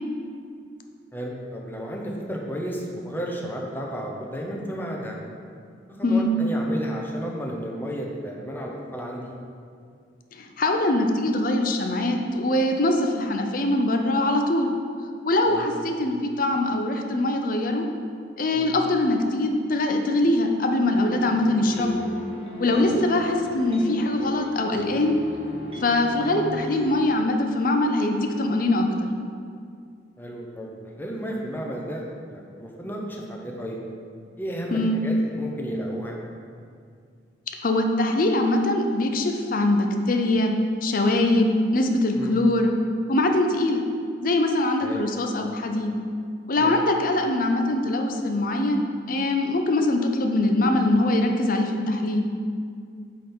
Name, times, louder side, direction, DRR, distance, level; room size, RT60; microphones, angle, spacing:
voice 1, 1.1-5.2 5.9-9.3 15.5-15.7 18.5-18.7 22.9-23.0 30.2-30.7 31.0-33.8 34.4-36.2 42.1-42.3 44.8-45.0 46.6-46.7, equal, 10° left, -1 dB, 0.8 m, -33 dB
voice 2, 10.3-14.7 15.2-17.8 18.4-22.0 22.6-25.2 25.8-29.1 34.7-35.0 37.6-40.5 40.8-42.7 43.1-43.8 44.2-45.9 46.5-52.2, left 2 dB, 50° left, 4 dB, 0.6 m, -22 dB
sound 1, 20.9-27.1, left 2 dB, 35° right, 1.0 m, -35 dB
8.5 x 3.8 x 4.4 m, 2.2 s
head